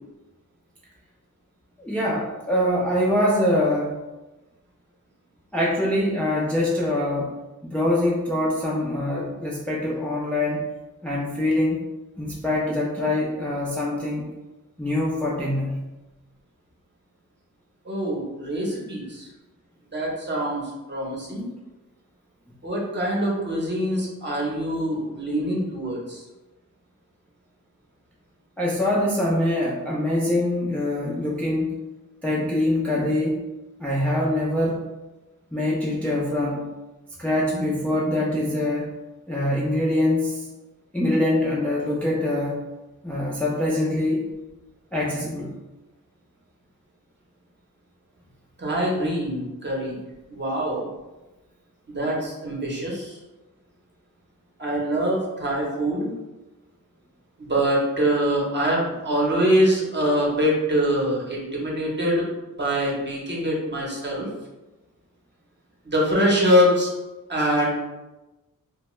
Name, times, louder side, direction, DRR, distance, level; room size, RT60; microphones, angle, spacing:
voice 1, 1.8-3.9 5.5-7.3 7.6-10.6 11.0-11.8 12.2-14.3 14.8-15.8 28.6-31.7 32.2-33.4 33.8-34.8 35.5-36.6 37.2-38.9 39.3-40.4 40.9-42.6 43.0-44.3 44.9-45.5, left 1 dB, 5° left, -5 dB, 0.4 m, -24 dB
voice 2, 17.9-19.3 19.9-20.6 20.9-21.4 22.6-26.2 48.6-50.0 50.3-50.9 51.9-53.2 54.6-56.1 57.4-62.3 62.6-64.3 65.8-66.9 67.3-67.7, equal, 35° right, -3 dB, 0.8 m, -24 dB
2.7 x 2.1 x 3.0 m, 1.1 s
wide cardioid pair, 115°, 33 cm